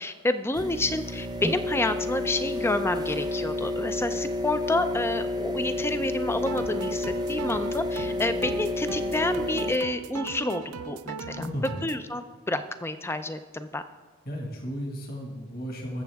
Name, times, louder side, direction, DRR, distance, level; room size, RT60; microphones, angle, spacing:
voice 1, 0.0-11.4 11.8-13.8, left 2 dB, 10° left, 10 dB, 0.4 m, -29 dB
sound 1, 0.5-9.8, left 1 dB, 15° right, 0.8 m, -30 dB
sound 2, 6.4-12.0, right 5 dB, 80° right, 0.5 m, -39 dB
voice 2, 11.3-11.8 14.3-16.0, equal, 45° left, 0 dB, 1.7 m, -34 dB
21.5 x 7.4 x 3.5 m, 1.5 s
head